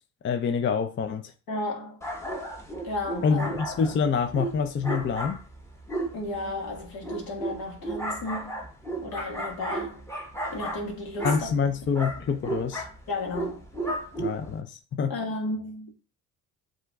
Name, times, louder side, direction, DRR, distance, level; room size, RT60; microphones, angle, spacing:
voice 1, 0.2-1.3 3.2-5.4 11.2-12.8 14.2-15.1, left 6 dB, 30° left, 0.4 m, -26 dB
voice 2, 1.5-2.0 2.8-3.5 6.1-8.6 9.0-10.0 10.5-11.5 13.1-13.6 15.1-15.9, left 2 dB, 70° left, 1.5 m, -33 dB
sound 1, 2.0-14.6, right 1 dB, 5° left, 0.9 m, -34 dB
7.7 x 2.6 x 2.2 m
supercardioid pair, 70°, 38 cm